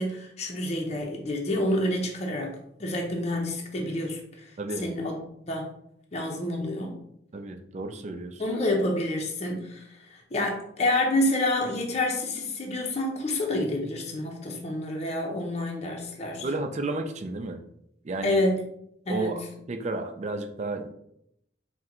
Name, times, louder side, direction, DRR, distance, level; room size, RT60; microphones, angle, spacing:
voice 1, 0.0-5.2 5.5-5.7 6.1-7.0 8.4-16.5 18.2-18.6 19.1-19.5, left 1 dB, 35° left, 0 dB, 0.6 m, -28 dB
voice 2, 7.3-8.4 16.4-17.6 18.0-18.4 19.1-20.9, right 2 dB, 40° right, 7 dB, 0.4 m, -32 dB
4.4 x 2.1 x 3.7 m, 0.74 s
head